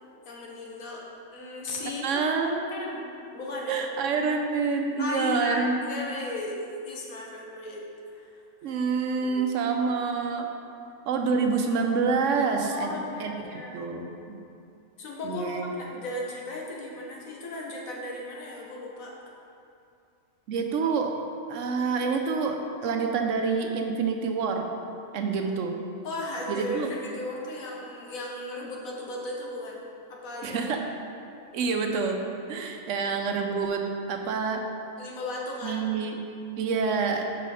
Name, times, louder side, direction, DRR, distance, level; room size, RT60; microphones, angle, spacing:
voice 1, 0.2-1.0 1.3-2.2 2.7-3.0 3.3-3.8 5.0-7.8 8.1-8.7 9.1-9.4 12.6-13.8 15.0-19.1 26.0-30.6 35.0-35.8, left 2 dB, 90° left, -2 dB, 1.4 m, -36 dB
voice 2, 2.0-2.7 3.7-5.8 8.6-10.5 11.1-14.4 15.2-15.7 20.5-21.1 21.5-24.7 25.1-25.8 26.5-26.9 30.4-30.8 31.5-34.6 35.6-36.2 36.6-37.2, right 5 dB, 70° right, 4 dB, 0.9 m, -27 dB
5.7 x 4.9 x 4.8 m, 2.5 s
omnidirectional pair, 1.4 m